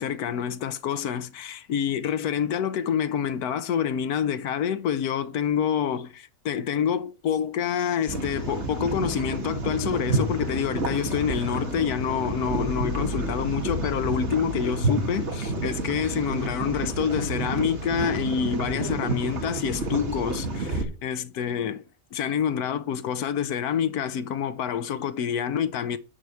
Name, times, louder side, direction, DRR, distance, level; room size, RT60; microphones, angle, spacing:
voice 1, 0.0-21.8 22.1-26.0, left 8 dB, 90° left, 1.3 m, -27 dB
sound 1, 8.1-20.8, right 2 dB, 50° right, 1.9 m, -29 dB
10.5 x 4.7 x 6.9 m
omnidirectional pair, 1.6 m